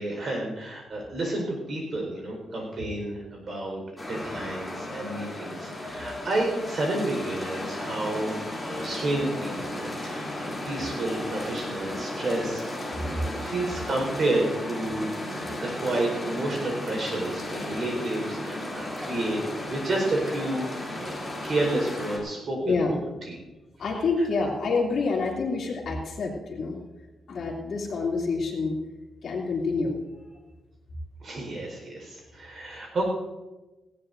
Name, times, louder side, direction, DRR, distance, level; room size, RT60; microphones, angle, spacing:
voice 1, 0.0-3.8 4.1-13.0 13.3-19.4 19.7-21.2 21.4-23.0 23.3-23.4 31.2-33.1, right 2 dB, 45° right, 0 dB, 4.6 m, -30 dB
sound 1, 4.0-22.2, left 1 dB, 5° left, 3.2 m, -35 dB
voice 2, 22.6-23.0 23.8-26.8 27.3-28.8 29.2-29.9, left 4 dB, 55° left, -2 dB, 2.9 m, -27 dB
18.5 x 17.0 x 2.7 m, 1.1 s
wide cardioid pair, 165°, 0 cm